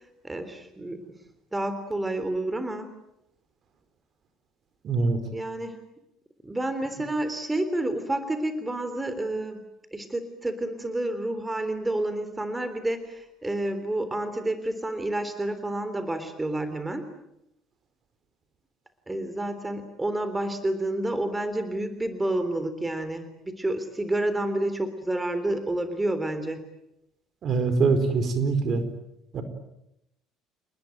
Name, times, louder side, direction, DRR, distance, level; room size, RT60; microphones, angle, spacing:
voice 1, 0.2-1.0 1.5-2.9 5.3-5.8 6.4-9.6 9.9-17.1 19.1-26.6, right 1 dB, 15° right, 10 dB, 3.6 m, -29 dB
voice 2, 4.8-5.2 27.4-28.8 29.3-29.4, right 4 dB, 50° right, 10 dB, 4.8 m, -23 dB
29.0 x 20.0 x 9.3 m, 0.84 s
hypercardioid pair, 65°, 0 cm